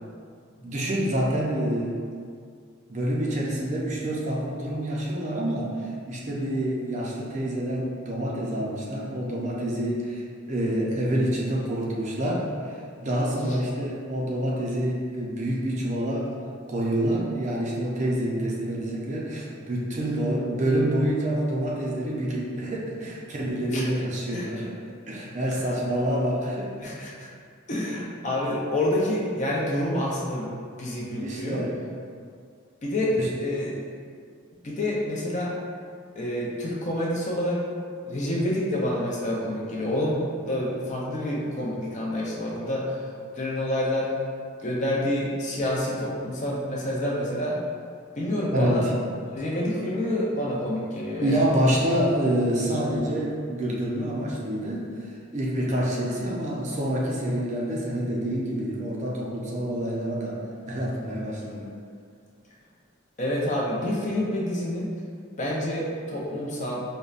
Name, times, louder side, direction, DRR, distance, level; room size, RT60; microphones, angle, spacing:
voice 1, 0.6-2.0 2.9-5.7 6.1-10.2 10.5-16.3 16.7-24.7 25.1-26.7 31.2-31.8 33.2-33.3 48.5-48.9 51.2-54.8 55.3-61.7, right 1 dB, 35° right, -4 dB, 0.4 m, -27 dB
voice 2, 26.8-27.3 27.7-30.5 30.8-31.6 32.8-33.1 33.4-33.8 34.6-35.5 36.2-37.6 38.0-43.0 43.3-44.1 44.6-47.6 48.2-48.9 49.3-51.4 63.2-64.9 65.4-66.8, left 1 dB, 35° left, -5 dB, 0.5 m, -28 dB
5.2 x 2.1 x 2.4 m, 2.2 s
head